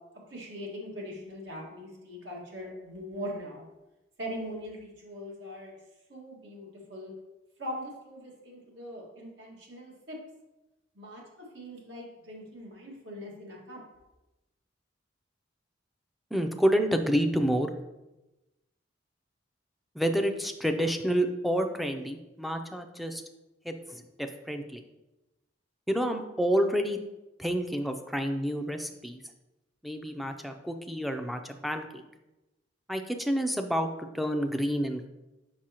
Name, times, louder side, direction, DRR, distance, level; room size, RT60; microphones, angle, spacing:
voice 1, 0.3-3.7 4.2-5.7 6.1-7.1 7.6-10.2 11.0-13.8, equal, 90° right, -3 dB, 1.8 m, -41 dB
voice 2, 16.3-17.7 20.0-23.2 23.7-24.8 25.9-27.0 27.4-29.2 29.8-32.0 32.9-35.1, equal, ahead, 5 dB, 0.4 m, -29 dB
6.2 x 5.4 x 2.9 m, 1.0 s
head